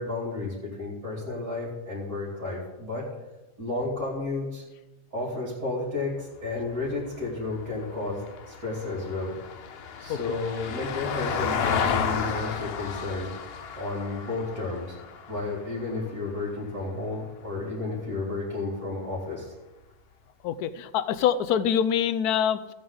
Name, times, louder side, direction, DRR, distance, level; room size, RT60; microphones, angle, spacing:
voice 1, 0.0-3.1 3.6-4.6 5.1-9.3 10.0-13.3 13.7-14.9 15.3-19.5, left 3 dB, 65° right, -9 dB, 3.0 m, -32 dB
Vehicle, 6.4-16.8 19.1-19.2, left 6 dB, 50° left, 0.8 m, -33 dB
voice 2, 20.4-22.7, left 9 dB, 80° left, 13 dB, 1.2 m, -25 dB
15.0 x 8.6 x 3.9 m, 1.1 s
omnidirectional pair, 1.6 m